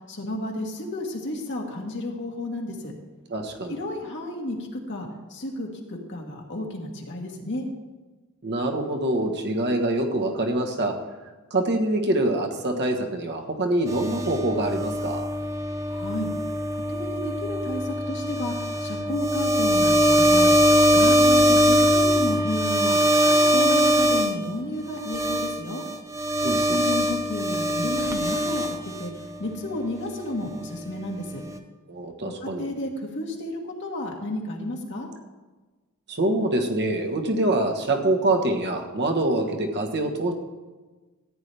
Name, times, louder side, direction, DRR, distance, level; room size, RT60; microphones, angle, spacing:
voice 1, 0.1-2.9 3.7-7.7 15.9-16.3 16.7-20.5 20.9-23.0 23.4-25.8 26.6-29.1 29.4-31.4 32.4-35.1, left 1 dB, 55° left, 0 dB, 1.7 m, -32 dB
voice 2, 3.3-3.8 8.4-11.0 11.5-15.2 26.4-26.8 31.9-32.7 36.1-40.3, right 1 dB, 50° right, 3 dB, 1.3 m, -25 dB
sound 1, 13.9-24.3 25.0-29.2, equal, 15° right, 0.8 m, -22 dB
14.0 x 9.2 x 3.4 m, 1.3 s
head